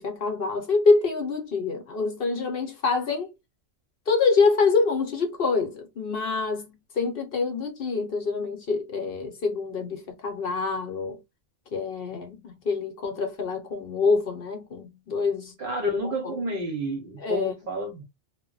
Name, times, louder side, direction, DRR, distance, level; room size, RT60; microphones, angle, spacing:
voice 1, 0.0-3.3 4.1-11.2 11.7-15.5 16.0-16.4 17.2-17.5, left 4 dB, 55° left, 0.8 m, -26 dB
voice 2, 15.6-18.0, equal, 55° right, 0.7 m, -30 dB
2.1 x 2.1 x 3.6 m
omnidirectional pair, 1.3 m